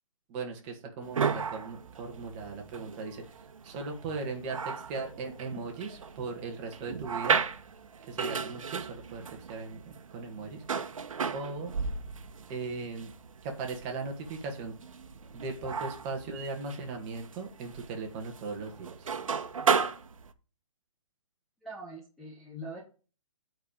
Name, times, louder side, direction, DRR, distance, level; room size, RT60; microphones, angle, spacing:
voice 1, 0.3-3.4 3.6-7.4 8.1-9.8 10.1-10.6 11.3-11.8 12.5-13.1 13.4-14.7 15.3-19.1, right 4 dB, 20° right, 2 dB, 1.7 m, -38 dB
sound 1, 1.0-20.3, right 6 dB, 80° right, 1.2 m, -35 dB
voice 2, 21.6-22.8, right 1 dB, ahead, -4 dB, 0.9 m, -43 dB
8.2 x 4.6 x 5.0 m, 0.35 s
hypercardioid pair, 170°, 17 cm